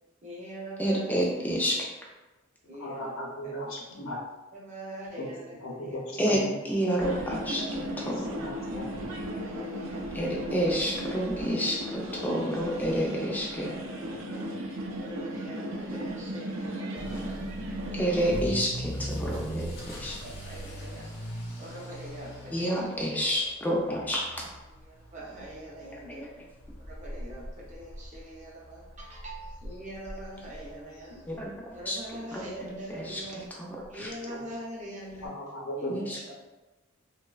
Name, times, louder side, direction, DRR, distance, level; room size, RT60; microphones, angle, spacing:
voice 1, 0.2-1.2 2.7-3.7 4.5-6.0 7.0-8.1 8.7-10.1 10.8-10.9 11.6-11.8 12.9-13.3 13.5-14.5 15.0-17.4 17.9-18.3 20.2-21.1 21.6-22.8 23.1-23.7 24.8-26.2 26.8-31.3 31.7-33.5 33.9-35.3 35.8-36.3, right 1 dB, 35° right, -4 dB, 0.6 m, -43 dB
voice 2, 0.8-2.0 6.2-8.2 10.1-13.8 17.9-20.2 22.5-24.5 26.1-26.4 31.3-32.0 32.3-32.4 32.9-33.2 33.9-34.1 35.9-36.2, equal, 10° left, -3 dB, 0.4 m, -29 dB
voice 3, 2.8-4.2 5.2-5.3 5.6-6.5 8.0-9.1 35.2-35.9, equal, 85° left, -2 dB, 0.6 m, -37 dB
sound 1, 7.0-18.4, equal, 85° right, 0.5 m, -36 dB
Motor vehicle (road) / Accelerating revving vroom, 17.0-31.8 32.1-32.5 33.0-33.1 33.4-33.5 33.8-33.9 35.2-35.3, equal, 50° left, 0.7 m, -41 dB
3.0 x 2.0 x 2.3 m, 1.1 s
head